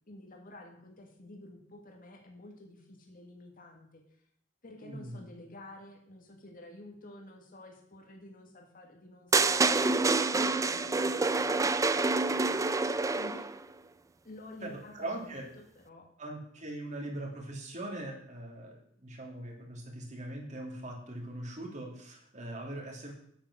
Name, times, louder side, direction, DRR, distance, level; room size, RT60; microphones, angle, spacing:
voice 1, 0.1-4.0 4.6-13.5 14.2-16.1, left 1 dB, 45° left, 2 dB, 1.9 m, -51 dB
voice 2, 4.8-5.2 14.6-15.5 16.2-23.1, right 1 dB, 40° right, 1 dB, 2.9 m, -41 dB
sound 1, 9.3-13.6, right 3 dB, 15° right, 0.4 m, -27 dB
9.0 x 8.8 x 6.2 m, 0.67 s
head